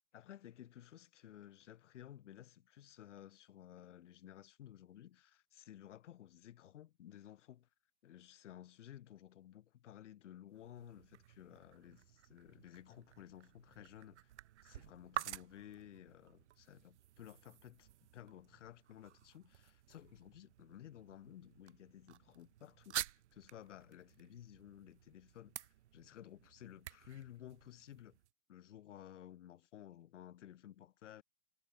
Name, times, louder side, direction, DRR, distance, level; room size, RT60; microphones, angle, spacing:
voice 1, 0.1-7.7 8.0-14.3 14.6-17.8 18.1-28.2 28.5-31.2, left 11 dB, 65° left, 2.8 m, -55 dB
sound 1, 10.5-28.3, right 12 dB, 60° right, 3.8 m, -50 dB
hypercardioid pair, 150°, 39 cm